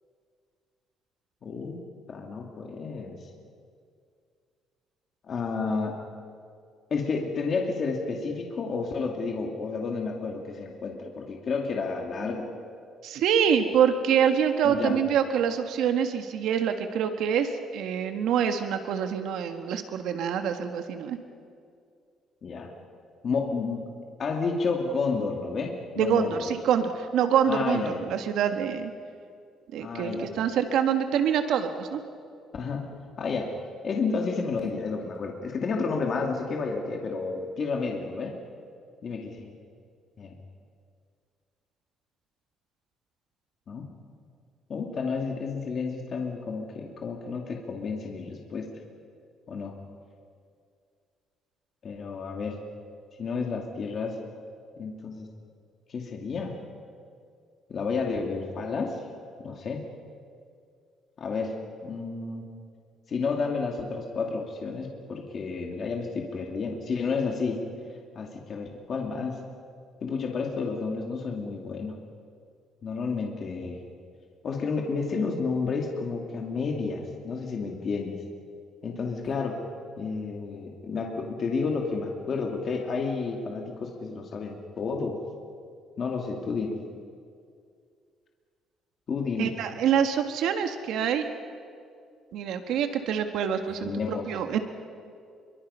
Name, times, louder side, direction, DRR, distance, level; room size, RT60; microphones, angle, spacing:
voice 1, 1.4-1.8 2.1-3.2 5.3-6.0 6.9-12.5 14.6-15.0 22.4-22.7 23.2-23.8 24.2-26.5 27.5-28.0 29.8-30.4 32.5-32.8 33.2-33.5 33.8-38.3 39.0-39.5 40.2-40.3 43.7-43.9 44.7-48.7 49.5-49.7 51.8-52.6 53.2-54.1 54.8-55.3 55.9-56.5 57.7-59.0 59.4-59.8 61.2-61.5 61.8-62.4 63.1-67.6 68.2-69.4 70.0-71.9 72.8-73.8 74.4-78.2 78.8-79.6 80.0-85.2 86.0-86.8 89.1-89.5 93.7-94.3, left 4 dB, 35° left, 1 dB, 2.2 m, -31 dB
voice 2, 13.0-21.2 26.0-28.9 29.7-32.0 89.4-91.3 92.3-94.6, right 8 dB, 70° right, 6 dB, 1.6 m, -26 dB
27.0 x 23.5 x 5.6 m, 2.2 s
cardioid pair, 160°, 0 cm